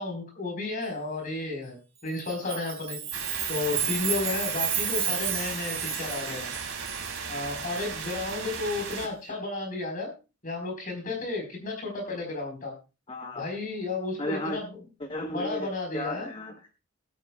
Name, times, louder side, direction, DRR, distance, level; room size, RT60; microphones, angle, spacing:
voice 1, 0.0-1.8 2.0-3.0 3.5-6.5 7.3-10.1 10.4-12.7 13.3-14.6 15.3-16.3, left 3 dB, 40° left, 3 dB, 4.3 m, -32 dB
Chime, 2.2-7.3, right 8 dB, 30° right, 2.6 m, -32 dB
sound 1, 3.1-9.1, right 5 dB, 90° right, 3.0 m, -36 dB
voice 2, 9.0-9.4 13.1-13.5 14.2-14.6 15.0-16.7, left 1 dB, 25° left, 4 dB, 1.1 m, -35 dB
19.5 x 9.3 x 2.3 m, 0.30 s
head